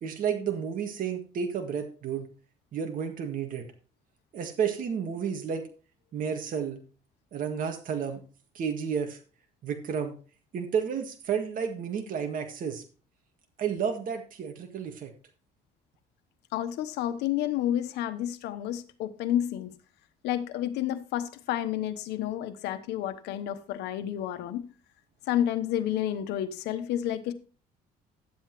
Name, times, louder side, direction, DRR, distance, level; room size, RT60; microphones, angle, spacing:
voice 1, 0.0-2.3 2.7-3.6 4.3-5.7 6.1-6.8 7.3-8.2 8.6-9.2 9.6-10.2 10.5-12.8 13.6-15.1, right 7 dB, 55° right, 1.8 m, -31 dB
voice 2, 16.5-19.7 20.2-24.6 25.3-27.3, left 11 dB, 85° left, 1.1 m, -30 dB
11.5 x 8.0 x 3.1 m
cardioid pair, 110°, 17 cm